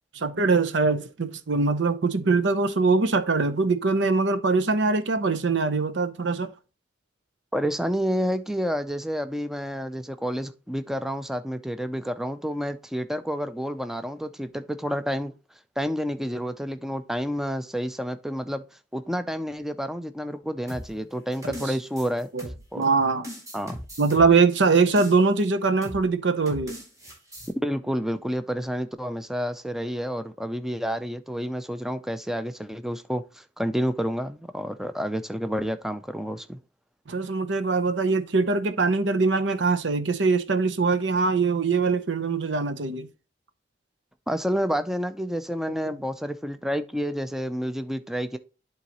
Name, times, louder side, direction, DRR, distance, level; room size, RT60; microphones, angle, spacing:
voice 1, 0.1-6.5 21.4-21.7 22.3-22.5 22.8-23.3 24.0-26.8 37.1-43.1 45.8-45.9, right 4 dB, 90° right, 0.7 m, -22 dB
voice 2, 7.5-15.3 15.8-18.6 18.9-22.3 22.7-22.8 23.5-23.8 27.6-36.6 44.3-48.4, equal, ahead, 0.4 m, -29 dB
sound 1, 20.7-22.8 23.2-25.4 25.8-26.1 26.5-27.5, equal, 20° right, 4.1 m, -40 dB
11.0 x 3.9 x 3.0 m
head